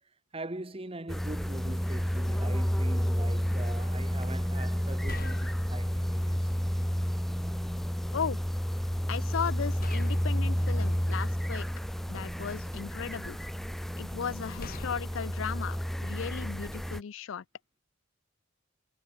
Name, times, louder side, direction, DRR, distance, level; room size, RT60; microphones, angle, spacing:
voice 1, 0.3-6.5, right 2 dB, 25° right, 1.2 m, -42 dB
sound 1, 1.1-17.0, equal, ahead, 0.4 m, -31 dB
sound 2, 4.4-4.5 5.0-6.3 7.3-7.4 9.8-12.0 12.5-13.4 14.6-16.7, left 3 dB, 40° left, 0.8 m, -46 dB
voice 2, 9.1-11.6 12.1-13.4 14.0-17.4, left 7 dB, 60° left, 0.4 m, -36 dB
head